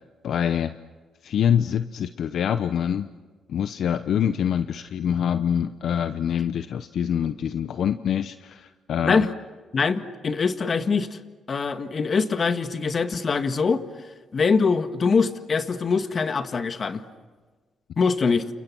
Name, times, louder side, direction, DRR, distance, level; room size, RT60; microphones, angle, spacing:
voice 1, 0.2-0.8 1.2-3.1 3.5-9.2, left 9 dB, 65° left, 10 dB, 0.8 m, -25 dB
voice 2, 9.7-11.2 11.5-13.8 14.3-17.0 18.0-18.5, left 5 dB, 40° left, 8 dB, 1.8 m, -23 dB
29.5 x 29.5 x 6.2 m, 1.4 s
cardioid pair, 90°, 0 cm